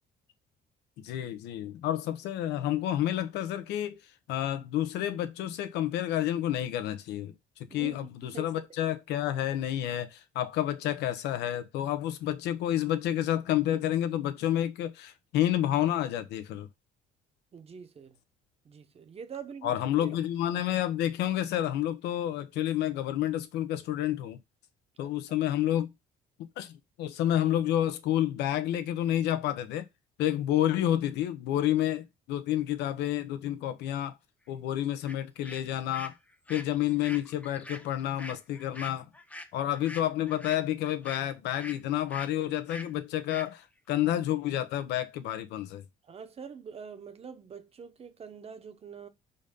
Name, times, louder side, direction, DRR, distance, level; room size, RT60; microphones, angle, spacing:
voice 1, 1.0-3.9 4.3-7.3 7.7-16.7 19.6-24.4 25.0-25.9 26.4-29.9 30.2-34.2 34.5-36.1 36.5-39.1 39.5-45.8, left 12 dB, 85° left, 1.0 m, -29 dB
voice 2, 7.7-8.6 17.5-18.1 18.6-19.7 20.0-20.2 25.0-25.1 46.1-49.1, right 6 dB, 35° right, 1.1 m, -45 dB
sound 1, 35.0-35.2 35.4-41.8 42.1-42.3 42.7-42.9 43.3-43.5, left 1 dB, 10° left, 0.8 m, -44 dB
5.4 x 4.1 x 5.2 m
cardioid pair, 110°, 17 cm